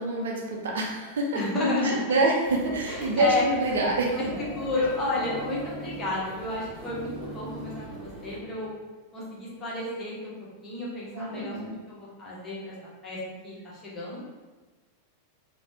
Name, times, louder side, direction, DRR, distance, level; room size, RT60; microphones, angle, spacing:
voice 1, 0.0-1.4 1.8-4.2 11.1-11.8, right 2 dB, 60° right, -1 dB, 0.5 m, -26 dB
voice 2, 1.3-2.0 2.9-3.4 4.1-8.7 9.1-10.3 10.6-12.7 13.0-14.2, left 2 dB, 20° left, -7 dB, 1.0 m, -31 dB
sound 1, 2.4-8.4, right 1 dB, 40° right, 1.0 m, -44 dB
sound 2, 4.1-8.8, right 1 dB, 10° right, 0.4 m, -41 dB
3.1 x 2.1 x 2.7 m, 1.2 s
figure-of-eight pair, 90°, 0 cm